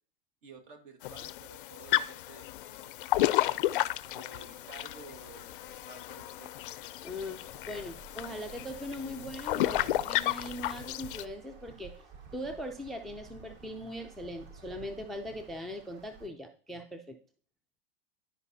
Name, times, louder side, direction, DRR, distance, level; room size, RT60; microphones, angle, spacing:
voice 1, 0.4-3.0 3.5-3.8 4.1-5.5 5.9-6.5, right 5 dB, 60° right, 7 dB, 1.6 m, -52 dB
sound 1, 1.0-11.2, left 15 dB, 65° left, 0.4 m, -33 dB
sound 2, 3.8-16.3, right 4 dB, 35° right, 1.1 m, -53 dB
voice 2, 7.0-11.9 12.3-17.2, left 1 dB, ahead, 7 dB, 0.3 m, -40 dB
12.0 x 5.0 x 2.7 m, 0.44 s
hypercardioid pair, 125°, 29 cm